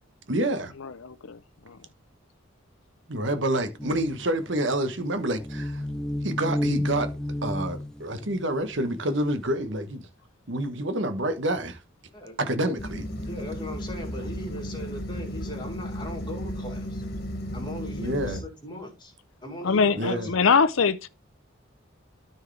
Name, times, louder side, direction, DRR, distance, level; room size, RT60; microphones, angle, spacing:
voice 1, 0.3-0.7 3.1-5.8 6.2-7.1 7.4-10.1 10.5-11.8 12.4-13.0 18.0-18.4 19.9-20.3, right 1 dB, 60° right, 1.2 m, -28 dB
voice 2, 0.8-1.4 1.7-1.8 19.6-21.1, left 5 dB, 80° left, 0.6 m, -23 dB
flute bass, 3.8-9.0, left 1 dB, 5° left, 0.5 m, -31 dB
voice 3, 12.1-12.8 13.2-17.0 17.5-19.1 19.4-20.4, left 1 dB, 20° left, 3.0 m, -39 dB
sound 1, 12.8-18.4, equal, 50° left, 2.0 m, -34 dB
13.0 x 4.6 x 3.3 m
head